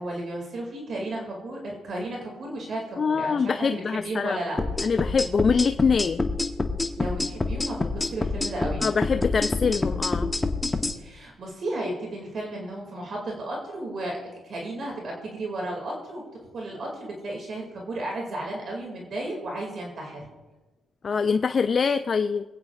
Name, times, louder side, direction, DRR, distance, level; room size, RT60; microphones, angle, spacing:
voice 1, 0.0-4.6 7.0-8.9 11.0-14.2 14.4-16.2 16.5-20.3, right 1 dB, 55° right, -1 dB, 2.3 m, -33 dB
voice 2, 3.0-4.4 4.8-6.3 8.8-10.3 21.0-22.4, left 5 dB, 40° left, 10 dB, 0.3 m, -24 dB
sound 1, 4.6-11.0, left 3 dB, 20° left, 0.9 m, -27 dB
22.5 x 8.7 x 2.4 m, 1.2 s
cardioid pair, 90°, 0 cm